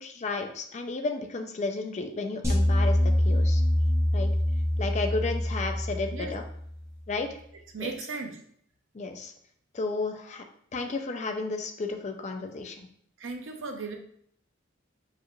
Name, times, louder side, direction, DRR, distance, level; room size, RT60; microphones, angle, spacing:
voice 1, 0.0-3.6 4.1-4.3 4.8-6.4 7.1-7.3 7.8-7.9 8.9-9.3 9.7-10.5 10.7-12.9, left 3 dB, 35° left, 5 dB, 0.4 m, -33 dB
sound 1, 2.4-6.8, left 1 dB, 15° right, 0.7 m, -25 dB
voice 2, 7.7-8.4 13.2-14.0, right 4 dB, 75° right, 4 dB, 0.6 m, -36 dB
4.8 x 2.5 x 3.0 m, 0.65 s
head